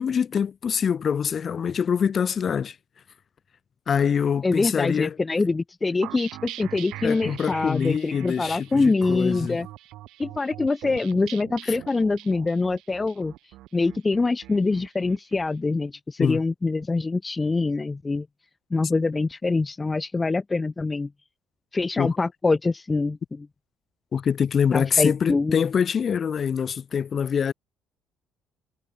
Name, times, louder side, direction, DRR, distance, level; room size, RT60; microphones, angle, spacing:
voice 1, 0.0-2.7 3.9-5.2 7.0-9.6 11.7-11.8 16.2-16.4 22.0-22.2 24.1-27.5, left 7 dB, 45° left, 3.4 m, -24 dB
voice 2, 4.4-9.7 10.2-13.3 13.7-18.3 18.7-21.1 21.7-23.5 24.7-25.6, left 3 dB, 25° left, 1.5 m, -24 dB
sound 1, 6.0-15.5, right 16 dB, 70° right, 5.9 m, -42 dB
hypercardioid pair, 60°, 0 cm